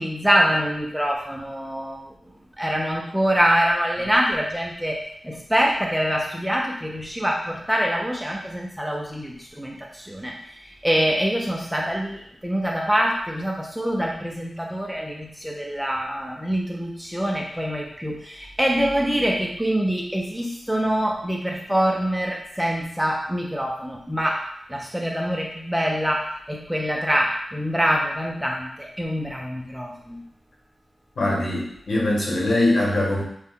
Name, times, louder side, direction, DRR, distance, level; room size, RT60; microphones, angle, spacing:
voice 1, 0.0-2.1 2.6-10.4 10.8-24.4 24.7-30.2, equal, 5° right, -1 dB, 0.5 m, -25 dB
voice 2, 31.2-33.2, left 1 dB, 70° left, -4 dB, 1.4 m, -22 dB
6.0 x 2.1 x 3.7 m, 0.68 s
wide cardioid pair, 160°, 0 cm